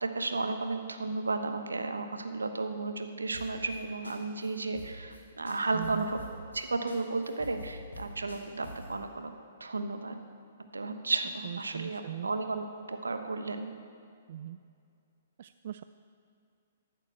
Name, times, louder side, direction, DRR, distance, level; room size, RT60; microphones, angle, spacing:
voice 1, 0.0-6.2 6.5-9.3 9.6-10.1 10.7-13.7, right 3 dB, 85° right, 7 dB, 1.1 m, -33 dB
sound 1, 3.3-3.8 4.0-4.2 4.4-4.5 4.7-5.2 5.4-6.6 6.9-7.0 7.2-8.9, left 1 dB, 85° left, 3.0 m, -46 dB
voice 2, 5.7-6.1 11.4-12.3 14.3-14.6 15.4-15.8, right 11 dB, 55° right, 12 dB, 0.3 m, -40 dB
13.5 x 9.0 x 7.3 m, 2.4 s
figure-of-eight pair, 125°, 0 cm